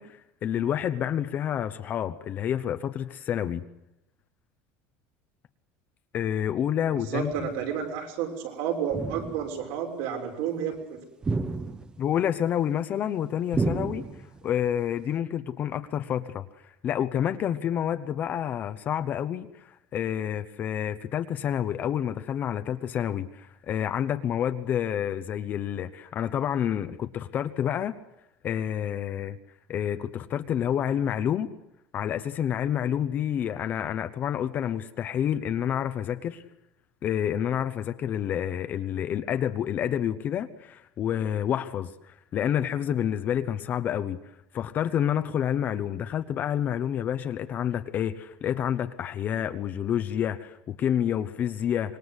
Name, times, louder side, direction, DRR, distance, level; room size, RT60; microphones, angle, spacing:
voice 1, 0.0-3.6 6.1-7.5 12.0-14.0 14.4-27.9 28.4-29.4 29.7-31.5 31.9-36.4 37.0-44.2 44.5-52.0, left 9 dB, 30° left, 0.9 m, -28 dB
voice 2, 6.9-11.0, right 8 dB, 70° right, 6.4 m, -31 dB
sound 1, 7.3-7.7 8.9-9.6 11.2-12.2 13.5-14.5, right 3 dB, 15° right, 1.0 m, -31 dB
26.0 x 21.5 x 8.2 m
cardioid pair, 170°, 6 cm